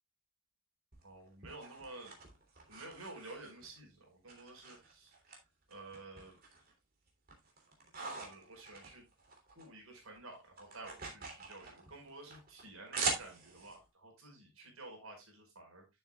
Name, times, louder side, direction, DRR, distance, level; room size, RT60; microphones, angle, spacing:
sound 1, 0.9-3.8 4.3-5.4 5.7-6.7 7.1-9.7 9.9-13.8, right 4 dB, 40° right, 3.1 m, -43 dB
voice 1, 1.0-2.2 2.7-5.1 5.7-6.4 7.9-9.1 9.5-15.9, right 2 dB, 75° right, 2 dB, 5.0 m, -52 dB
11.5 x 7.6 x 2.4 m, 0.21 s
head